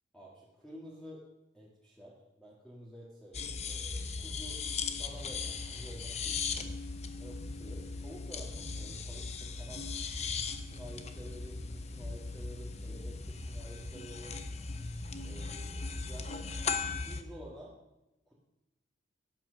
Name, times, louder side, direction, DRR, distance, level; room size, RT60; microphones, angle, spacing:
voice 1, 0.1-1.2 1.5-4.6 5.0-6.7 7.2-9.8 10.7-14.4 15.2-16.5 17.0-17.8 18.3-18.4, equal, 5° left, -6 dB, 2.0 m, -50 dB
sound 1, 3.3-17.2, left 4 dB, 35° left, 0.8 m, -38 dB
13.0 x 9.2 x 6.4 m, 0.93 s
head